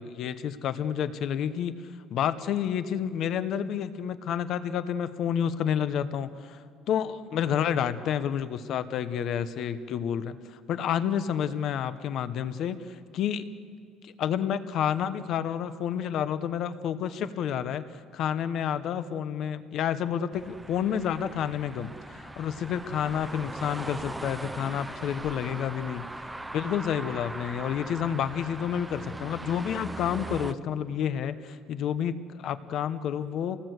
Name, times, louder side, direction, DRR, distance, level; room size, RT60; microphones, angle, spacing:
voice 1, 0.0-1.7 2.1-13.5 14.0-17.8 18.1-26.1 26.5-33.6, left 9 dB, 45° left, 12 dB, 0.9 m, -30 dB
sound 1, 20.3-30.5, right 2 dB, 5° right, 0.5 m, -40 dB
29.0 x 18.5 x 8.0 m, 2.3 s
cardioid pair, 180°, 0 cm